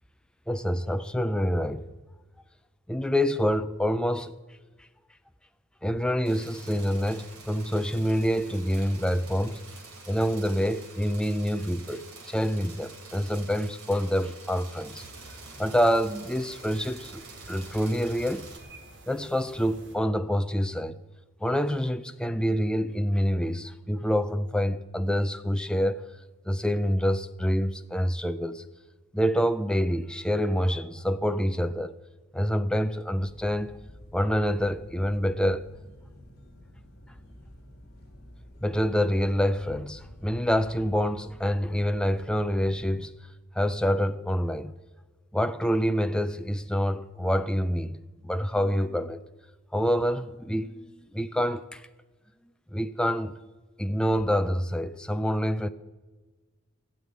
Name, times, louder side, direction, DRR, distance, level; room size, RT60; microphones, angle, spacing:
voice 1, 0.5-1.9 2.9-4.3 5.8-9.6 10.1-15.0 15.6-18.5 19.1-21.0 21.4-26.0 26.5-28.6 29.1-31.9 32.3-33.7 34.1-35.7 38.6-43.1 43.6-44.7 45.3-49.2 49.7-51.9 52.7-53.4 53.8-55.7, equal, 5° left, 0.4 m, -27 dB
sound 1, 6.2-18.6, right 4 dB, 80° right, 3.1 m, -47 dB
sound 2, 14.8-20.0, right 2 dB, 55° right, 2.3 m, -49 dB
sound 3, 33.2-43.0, equal, 45° left, 2.6 m, -50 dB
16.0 x 7.4 x 9.4 m
head